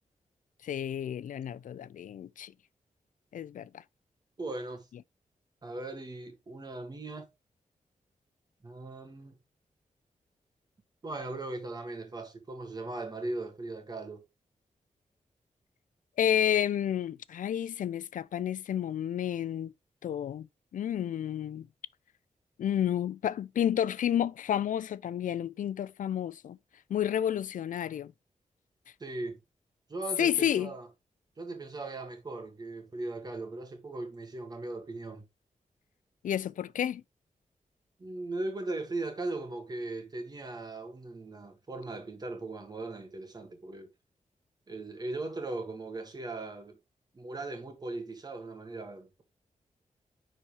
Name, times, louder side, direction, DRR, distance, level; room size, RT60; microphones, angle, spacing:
voice 1, 0.6-2.5 3.3-3.8 16.2-19.7 20.0-20.5 20.7-21.7 22.6-26.6 26.9-28.1 30.2-30.7 36.2-37.0, left 10 dB, 85° left, 0.4 m, -30 dB
voice 2, 4.4-4.9 5.6-7.3 8.6-9.4 11.0-14.2 29.0-29.4 29.9-30.9 31.4-35.2 38.0-43.9 44.7-46.8 47.1-49.2, right 2 dB, 30° right, 1.8 m, -38 dB
10.0 x 4.3 x 3.1 m
wide cardioid pair, 160°, 13 cm